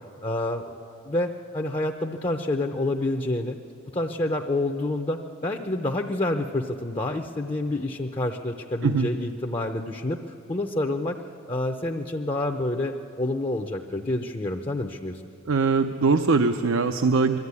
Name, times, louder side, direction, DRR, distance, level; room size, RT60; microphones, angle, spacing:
voice 1, 0.2-0.8 1.0-3.6 3.9-10.2 10.5-11.2 11.5-15.2, left 2 dB, 25° left, 4 dB, 0.6 m, -28 dB
voice 2, 15.4-17.4, right 4 dB, 70° right, 7 dB, 0.6 m, -21 dB
22.0 x 13.5 x 9.6 m, 2.7 s
head